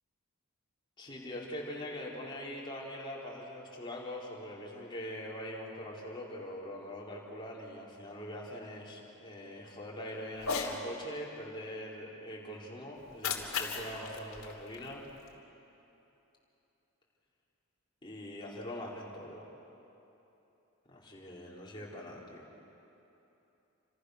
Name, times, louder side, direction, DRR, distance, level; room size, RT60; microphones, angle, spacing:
voice 1, 1.0-15.0 18.0-19.5 20.9-22.4, left 1 dB, 20° left, -4 dB, 4.4 m, -43 dB
Cat, 10.4-10.8 13.0-15.3, left 5 dB, 70° left, 2.9 m, -37 dB
30.0 x 26.5 x 6.7 m, 3.0 s
head